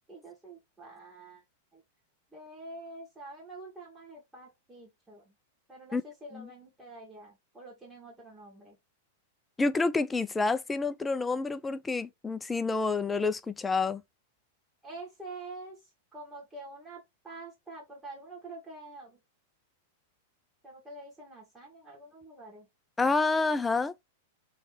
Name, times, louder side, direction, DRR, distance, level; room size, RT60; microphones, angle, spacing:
voice 1, 0.1-1.4 1.7-1.8 2.3-5.4 5.7-8.8 14.8-15.8 16.1-19.2 20.6-22.7, right 2 dB, 15° right, 1.7 m, -47 dB
voice 2, 9.6-14.0 23.0-23.9, left 3 dB, 15° left, 0.4 m, -28 dB
3.2 x 2.8 x 3.2 m
hypercardioid pair, 120°, 0 cm